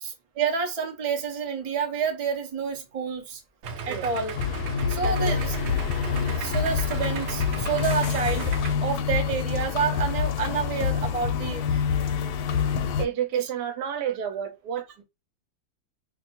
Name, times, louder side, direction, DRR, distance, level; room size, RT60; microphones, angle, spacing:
voice 1, 0.0-3.4 3.8-4.3 4.9-5.5 6.1-8.5 8.8-11.8 13.3-13.4, right 6 dB, 40° right, 0.5 m, -29 dB
Idling, 3.6-8.7, right 4 dB, 70° right, 1.0 m, -35 dB
sound 1, 4.3-13.0, left 7 dB, 75° left, 1.1 m, -26 dB
voice 2, 5.0-5.4 13.0-15.0, right 9 dB, 85° right, 1.3 m, -30 dB
2.7 x 2.3 x 4.1 m
omnidirectional pair, 1.7 m